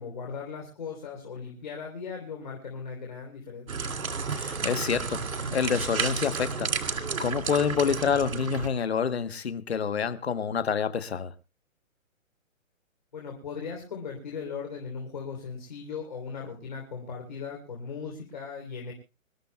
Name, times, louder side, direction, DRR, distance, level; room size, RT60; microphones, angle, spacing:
voice 1, 0.0-3.8 13.1-18.9, left 5 dB, 35° left, 3.5 m, -38 dB
sound 1, 3.7-8.7, right 5 dB, 80° right, 2.9 m, -32 dB
voice 2, 4.3-11.3, left 6 dB, 50° left, 1.2 m, -28 dB
26.5 x 13.5 x 2.3 m
hypercardioid pair, 175°, 41 cm